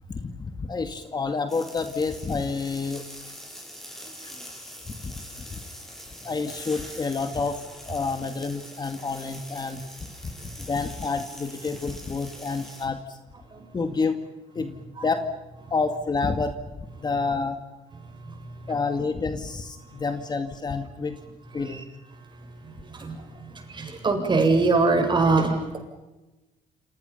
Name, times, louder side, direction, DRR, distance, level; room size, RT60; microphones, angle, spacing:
voice 1, 0.1-3.0 4.2-4.3 4.9-5.1 5.5-5.6 6.2-9.9 10.4-13.0 13.7-14.2 14.6-15.3 15.7-16.5 17.0-17.6 18.7-21.2 21.5-21.8, left 4 dB, 30° left, 7 dB, 2.2 m, -29 dB
sound 1, 1.5-12.9, equal, ahead, 7.9 m, -43 dB
voice 2, 18.0-18.7 21.6-21.8 22.2-25.9, right 3 dB, 30° right, 4 dB, 7.3 m, -25 dB
29.5 x 28.0 x 5.7 m, 1.1 s
cardioid pair, 110°, 15 cm